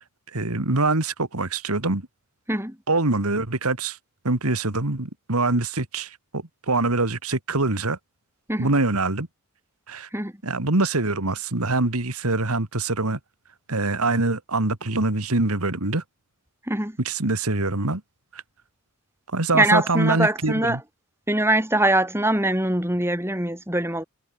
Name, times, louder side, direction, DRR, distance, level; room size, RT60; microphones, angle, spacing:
voice 1, 0.3-2.1 2.9-4.0 4.2-8.0 8.6-9.3 9.9-10.1 10.4-13.2 13.7-16.0 17.0-18.0 18.3-18.4 19.3-20.8, right 2 dB, 85° right, 2.4 m, -24 dB
voice 2, 16.7-17.0 19.5-20.8 21.3-24.0, right 1 dB, 10° right, 7.0 m, -22 dB
head